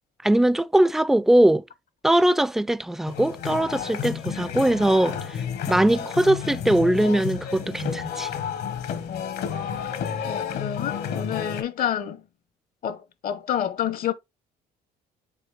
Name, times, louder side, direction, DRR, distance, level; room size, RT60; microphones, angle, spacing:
voice 1, 0.2-1.6 2.0-8.3, right 1 dB, ahead, 0.3 m, -21 dB
sound 1, 3.1-11.6, left 7 dB, 75° left, 1.2 m, -31 dB
voice 2, 9.1-9.9 10.3-12.2 12.8-14.1, left 10 dB, 60° left, 0.8 m, -29 dB
7.5 x 4.3 x 3.2 m
cardioid pair, 110°, 17 cm